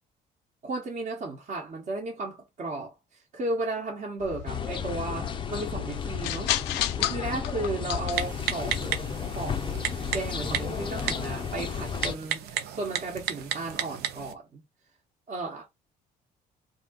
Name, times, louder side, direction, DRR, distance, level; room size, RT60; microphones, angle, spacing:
voice 1, 0.6-2.9 3.3-6.5 7.0-9.0 9.3-14.6 15.3-15.7, right 2 dB, 45° right, 1.1 m, -34 dB
sound 1, 4.2-11.6, left 14 dB, 85° left, 0.4 m, -35 dB
sound 2, 4.5-12.1, left 7 dB, 30° left, 0.5 m, -33 dB
Typing, 8.1-14.3, right 9 dB, 75° right, 0.6 m, -34 dB
3.6 x 2.7 x 3.7 m
cardioid pair, 110°, 17 cm